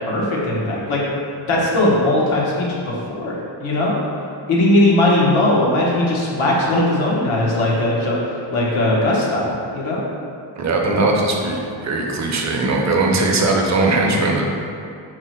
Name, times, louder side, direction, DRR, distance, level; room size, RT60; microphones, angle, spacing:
voice 1, 0.1-1.0 1.4-4.0 4.5-10.1, left 1 dB, 85° left, -4 dB, 1.0 m, -19 dB
voice 2, 10.6-14.4, right 2 dB, 35° right, 0 dB, 0.6 m, -19 dB
4.6 x 2.0 x 4.3 m, 2.4 s
cardioid pair, 100°, 48 cm